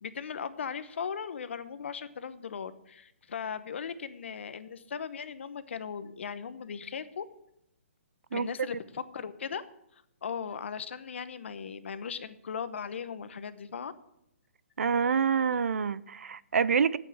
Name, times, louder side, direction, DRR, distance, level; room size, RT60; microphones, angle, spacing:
voice 1, 0.0-7.2 8.3-9.6 10.2-13.9, left 6 dB, 60° left, 1.0 m, -38 dB
voice 2, 8.3-8.7 14.8-17.0, right 6 dB, 85° right, 0.5 m, -27 dB
8.8 x 8.2 x 7.9 m
hypercardioid pair, 165°, 7 cm